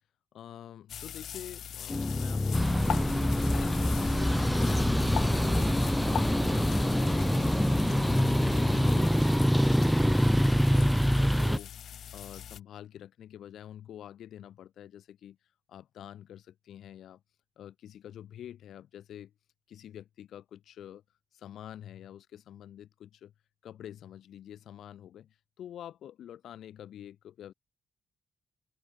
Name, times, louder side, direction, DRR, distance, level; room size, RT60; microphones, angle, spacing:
voice 1, 0.3-11.7 12.1-15.4 15.7-17.2 17.6-19.3 19.7-21.0 21.3-23.3 23.6-27.5, left 10 dB, 85° left, 4.2 m, -47 dB
sound 1, 0.9-12.6, left 9 dB, 65° left, 5.1 m, -41 dB
sound 2, 1.9-9.1, left 3 dB, 20° left, 1.4 m, -31 dB
sound 3, 2.5-11.6, equal, ahead, 0.6 m, -25 dB
open air
wide cardioid pair, 165°, 0 cm